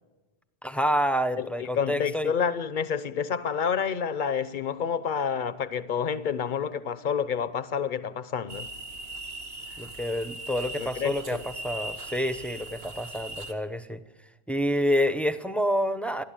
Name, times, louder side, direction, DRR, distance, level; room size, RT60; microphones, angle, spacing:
voice 1, 0.6-2.3 9.8-14.0 14.5-16.2, equal, ahead, 0.8 m, -28 dB
voice 2, 1.4-8.7 10.8-11.5, left 7 dB, 50° left, 0.9 m, -29 dB
sound 1, 8.5-13.5, right 2 dB, 75° right, 1.8 m, -39 dB
28.5 x 12.0 x 9.0 m
omnidirectional pair, 1.1 m